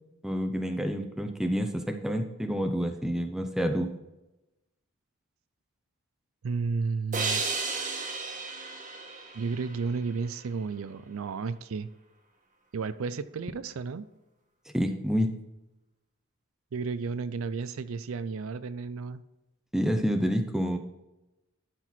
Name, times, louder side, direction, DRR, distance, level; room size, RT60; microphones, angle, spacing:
voice 1, 0.2-3.9 14.7-15.3 19.7-20.8, equal, ahead, 6 dB, 0.6 m, -28 dB
voice 2, 6.4-7.4 9.3-11.9 12.7-14.1 16.7-19.2, right 4 dB, 70° right, 14 dB, 0.4 m, -32 dB
sound 1, 7.1-10.4, right 4 dB, 35° right, 1.3 m, -34 dB
12.0 x 4.5 x 4.3 m, 0.97 s
head